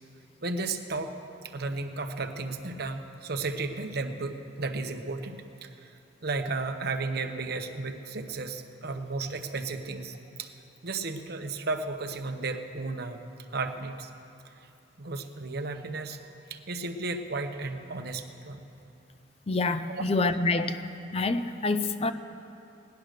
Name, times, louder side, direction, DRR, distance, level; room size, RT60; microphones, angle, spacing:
voice 1, 0.4-10.5 10.8-13.2 13.5-14.1 14.4-14.7 15.0-16.2 16.5-18.6 19.9-20.0, right 3 dB, 60° right, 6 dB, 0.9 m, -34 dB
voice 2, 19.5-20.7 21.1-22.1, left 3 dB, 35° left, 10 dB, 0.5 m, -26 dB
17.5 x 10.5 x 6.5 m, 2.7 s
head